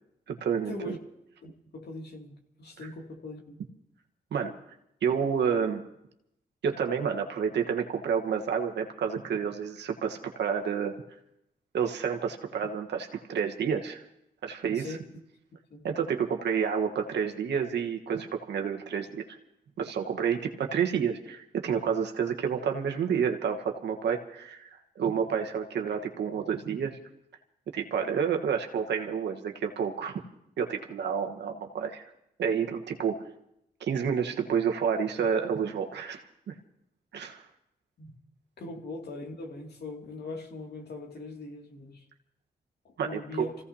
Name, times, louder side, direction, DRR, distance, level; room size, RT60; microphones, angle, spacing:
voice 1, 0.3-0.9 4.3-4.5 5.0-5.8 6.6-11.0 11.7-14.0 14.4-14.9 15.8-19.4 19.8-24.7 24.9-27.0 27.7-30.2 30.6-32.0 32.4-33.2 33.8-36.6 37.1-37.4 43.0-43.5, right 7 dB, 85° right, 4 dB, 1.3 m, -29 dB
voice 2, 1.4-3.6 14.7-15.0 15.7-15.9 38.0-38.1 38.6-42.0 42.8-43.6, left 2 dB, 70° left, 1 dB, 2.5 m, -41 dB
27.5 x 16.0 x 2.8 m, 0.80 s
cardioid pair, 50°, 17 cm